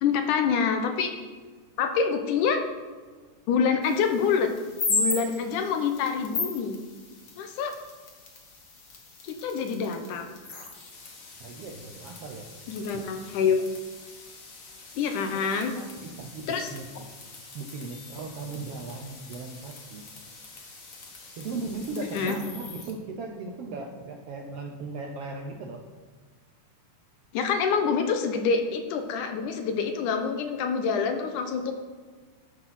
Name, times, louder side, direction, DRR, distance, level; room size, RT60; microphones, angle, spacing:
voice 1, 0.0-1.1 1.8-2.6 3.5-4.5 4.9-6.8 7.4-7.7 9.2-10.3 12.7-13.6 15.0-15.7 16.5-16.7 22.1-22.4 27.3-31.7, left 6 dB, 75° left, 6 dB, 2.4 m, -26 dB
sound 1, 3.8-22.9, left 3 dB, 60° left, 0.8 m, -38 dB
voice 2, 11.4-12.5 12.9-13.0 15.3-15.5 15.7-17.1 17.5-20.0 21.4-25.8, right 3 dB, 70° right, 2 dB, 1.4 m, -37 dB
12.5 x 6.0 x 5.9 m, 1.5 s
omnidirectional pair, 3.6 m